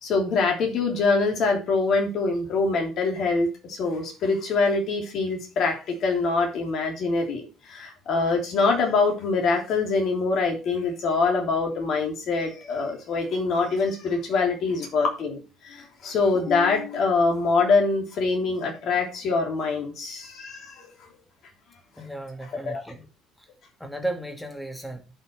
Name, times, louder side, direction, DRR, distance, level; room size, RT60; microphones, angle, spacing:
voice 1, 0.0-20.9 22.6-22.8, left 4 dB, 55° left, 3.2 m, -24 dB
voice 2, 22.0-23.1 23.4-23.5 23.8-25.0, right 1 dB, 5° left, 2.5 m, -34 dB
11.0 x 5.7 x 4.6 m
hypercardioid pair, 60°, 0 cm